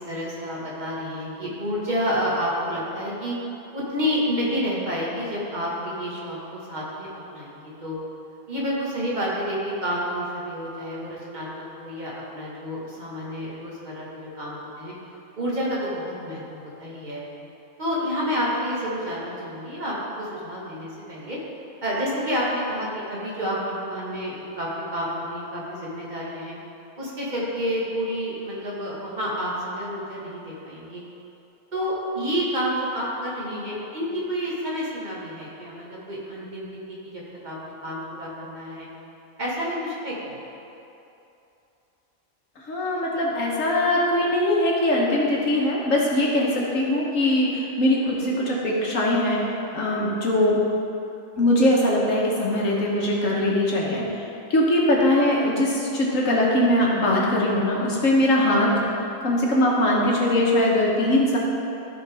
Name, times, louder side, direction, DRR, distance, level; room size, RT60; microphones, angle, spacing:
voice 1, 0.0-3.4 3.7-8.0 8.5-14.9 15.4-17.2 17.8-21.4 21.8-26.5 27.0-31.0 31.7-36.6 37.0-38.9 39.4-40.4, equal, 30° right, -6 dB, 1.8 m, -29 dB
voice 2, 42.7-47.5 47.8-49.4 49.7-50.6 51.4-54.0 54.5-58.7 59.2-61.4, left 1 dB, 65° left, -4 dB, 1.7 m, -21 dB
14.0 x 5.2 x 3.5 m, 2.8 s
omnidirectional pair, 1.5 m